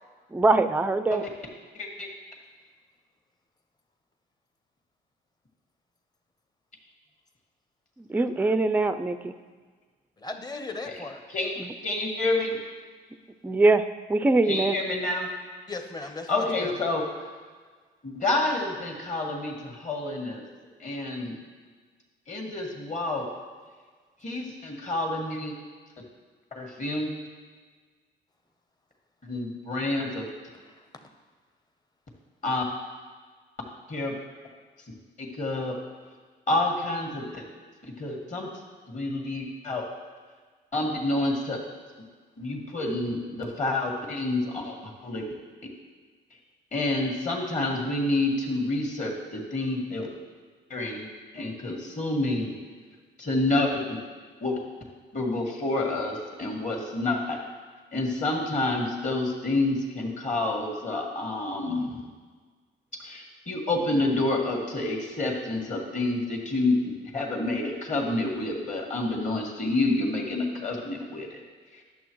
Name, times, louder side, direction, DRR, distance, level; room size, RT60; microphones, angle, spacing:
voice 1, 0.3-1.2 8.0-9.3 11.6-11.7 13.4-13.8 14.1-14.7, right 2 dB, 10° right, 10 dB, 0.3 m, -22 dB
voice 2, 1.7-2.1 11.3-11.5 11.8-12.6 14.5-15.3 16.3-17.0 18.0-20.4 20.8-21.4 22.3-23.3 24.2-25.6 26.5-27.1 29.2-30.3 32.4-32.6 33.9-34.1 35.2-35.7 36.5-37.4 38.0-38.5 38.9-39.8 40.7-41.6 42.4-45.2 46.7-50.1 50.7-51.1 51.3-52.6 53.2-54.0 54.4-54.5 55.1-57.4 57.9-62.1 63.0-71.4 71.7-71.8, left 2 dB, 40° left, 0 dB, 1.7 m, -28 dB
voice 3, 10.2-11.2 15.7-16.7 30.7-31.1, left 3 dB, 20° left, 6 dB, 0.8 m, -37 dB
11.0 x 6.9 x 3.1 m, 1.5 s
cardioid pair, 90°, 20 cm